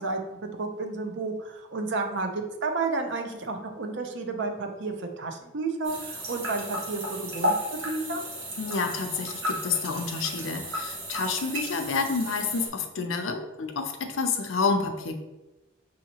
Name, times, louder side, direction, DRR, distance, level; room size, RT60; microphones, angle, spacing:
voice 1, 0.0-8.2, right 3 dB, 60° right, 5 dB, 0.6 m, -31 dB
sound 1, 5.8-12.7, equal, 90° right, 1.2 m, -33 dB
voice 2, 8.6-15.2, left 4 dB, 80° left, 6 dB, 0.6 m, -29 dB
6.3 x 2.8 x 2.9 m, 1.0 s
head